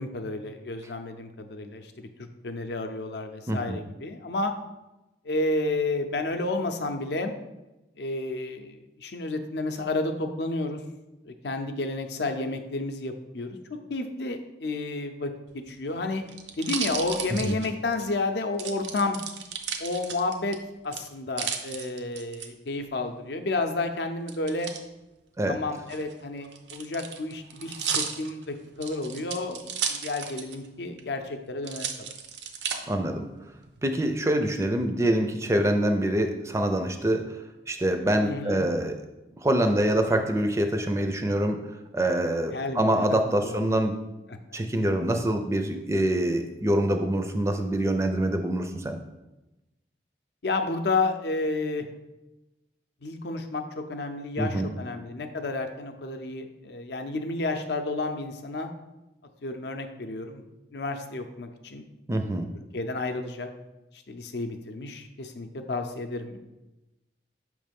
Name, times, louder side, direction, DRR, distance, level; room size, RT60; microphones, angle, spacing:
voice 1, 0.0-4.5 5.2-7.3 8.0-10.8 11.2-13.6 13.9-16.2 16.6-19.2 19.8-20.6 20.8-24.7 25.5-32.1 38.2-38.7 42.5-43.8 50.4-51.8 53.0-58.7 59.4-60.4 60.7-61.8 62.7-63.5 64.1-66.4, left 2 dB, 75° left, 6 dB, 0.6 m, -31 dB
voice 2, 3.5-3.8 17.4-17.6 25.4-25.6 32.9-33.3 33.8-37.4 37.7-38.9 39.4-43.9 44.5-49.0 54.4-54.7 62.1-62.5, right 1 dB, 15° right, 6 dB, 0.4 m, -25 dB
sound 1, 15.5-18.1 18.6-20.6 20.9-22.5 24.3-24.8 25.8-30.7 31.0-31.1 31.6-32.8 33.4-33.9, right 7 dB, 85° right, 0.6 m, -34 dB
6.2 x 3.2 x 5.2 m, 1.0 s
head